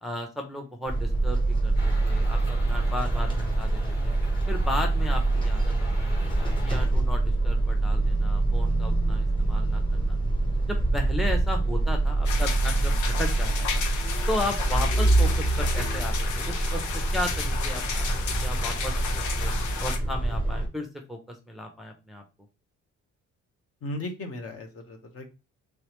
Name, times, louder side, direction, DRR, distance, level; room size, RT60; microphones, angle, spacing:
voice 1, 0.0-3.3 3.6-4.1 4.5-10.2 10.7-13.8 14.3-16.8 17.1-18.1 18.4-19.0 19.4-19.5 19.8-22.2, left 1 dB, ahead, 2 dB, 0.5 m, -35 dB
sound 1, 0.9-20.7, right 2 dB, 15° left, 0.9 m, -25 dB
sound 2, 1.8-6.9, left 1 dB, 35° left, 1.6 m, -42 dB
sound 3, 12.3-20.0, left 6 dB, 80° left, 0.7 m, -33 dB
voice 2, 23.8-25.3, left 1 dB, 50° left, 5 dB, 0.9 m, -36 dB
3.4 x 3.2 x 2.9 m, 0.29 s
cardioid pair, 160°, 29 cm